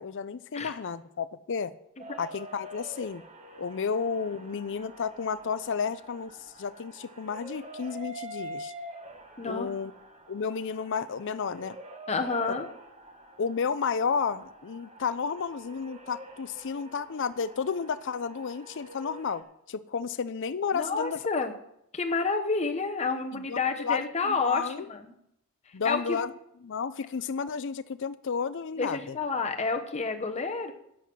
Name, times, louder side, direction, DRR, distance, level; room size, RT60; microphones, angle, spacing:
voice 1, 0.0-1.7 2.2-3.2 3.6-6.3 6.6-8.7 9.5-9.9 10.3-11.8 13.4-21.2 23.3-24.9 25.7-26.3 26.6-29.2, left 6 dB, 55° left, 14 dB, 0.5 m, -32 dB
sound 1, 2.0-19.4, right 1 dB, 30° right, 1.3 m, -46 dB
voice 2, 9.4-9.7 12.1-12.7 20.7-21.5 21.9-25.1 25.8-26.2 28.8-30.7, left 4 dB, 30° left, 5 dB, 1.0 m, -29 dB
10.0 x 8.0 x 6.1 m, 0.79 s
head